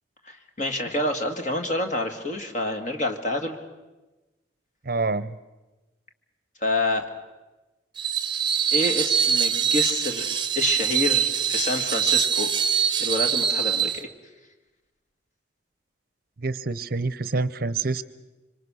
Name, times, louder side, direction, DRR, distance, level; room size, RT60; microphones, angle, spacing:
voice 1, 0.2-3.6 6.6-7.1 8.7-10.3 10.6-12.5 13.0-14.1, left 2 dB, 40° left, 5 dB, 2.0 m, -27 dB
voice 2, 4.9-5.3 16.4-18.0, right 3 dB, 50° right, 16 dB, 0.7 m, -27 dB
Screech, 8.0-14.0, right 8 dB, 25° right, 1.0 m, -24 dB
26.0 x 25.0 x 6.3 m, 1.1 s
head